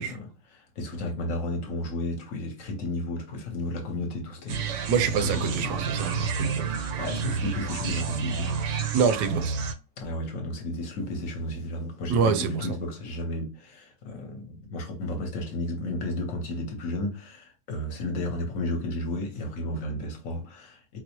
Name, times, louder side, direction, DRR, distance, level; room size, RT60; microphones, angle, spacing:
voice 1, 0.0-4.9 5.2-5.9 6.8-8.5 10.0-21.0, left 1 dB, 60° left, 1.1 m, -33 dB
sound 1, 4.5-9.7, right 5 dB, 70° right, 0.8 m, -30 dB
voice 2, 4.9-6.7 8.9-9.5 12.1-12.7, right 6 dB, 85° right, 1.1 m, -25 dB
4.4 x 2.0 x 2.8 m
omnidirectional pair, 1.7 m